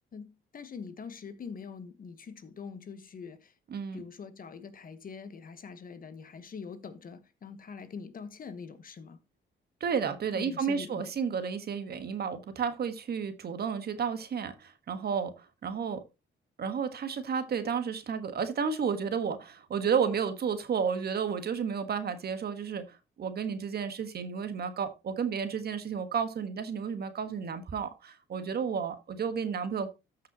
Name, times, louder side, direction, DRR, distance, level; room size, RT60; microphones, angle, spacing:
voice 1, 0.1-3.5 3.9-9.2 10.3-11.1, left 5 dB, 45° left, 1.3 m, -44 dB
voice 2, 3.7-4.0 9.8-16.0 16.6-29.9, right 6 dB, 55° right, 1.4 m, -32 dB
13.5 x 5.7 x 3.0 m
cardioid pair, 90°, 20 cm